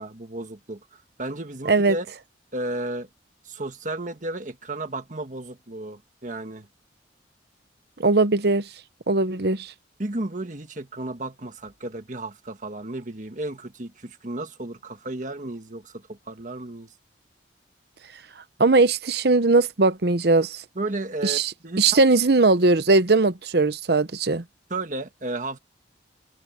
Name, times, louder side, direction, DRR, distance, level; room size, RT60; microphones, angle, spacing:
voice 1, 0.0-2.1 2.5-3.1 3.4-6.7 10.0-16.9 20.7-22.0 24.7-25.6, right 2 dB, 45° right, 1.6 m, -33 dB
voice 2, 8.0-8.6 9.1-9.7 18.6-20.6 21.2-21.5 21.8-24.4, right 3 dB, 60° right, 0.9 m, -19 dB
head